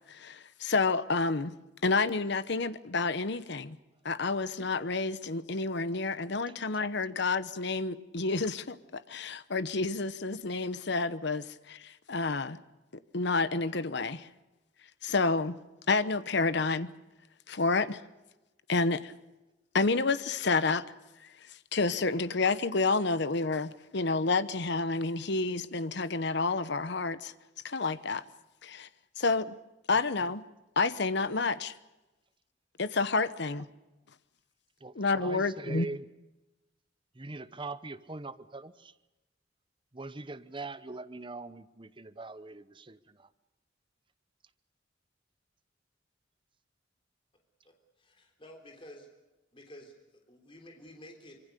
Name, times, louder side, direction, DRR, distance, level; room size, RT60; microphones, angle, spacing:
voice 1, 0.1-1.5 1.8-3.8 4.0-12.6 13.1-14.3 15.0-15.6 15.9-16.9 17.5-18.0 18.7-19.1 19.7-20.8 21.7-27.3 27.6-28.2 28.6-28.9 29.2-29.6 29.9-30.4 30.8-31.7 32.8-33.7 35.0-35.9, left 3 dB, 65° left, 1.0 m, -29 dB
voice 2, 6.5-6.8 34.8-36.1 37.1-38.9 39.9-43.3, right 3 dB, 25° right, 0.9 m, -42 dB
voice 3, 47.6-49.1 49.5-49.9 50.3-51.4, left 1 dB, 30° left, 3.6 m, -51 dB
25.5 x 23.5 x 6.8 m
head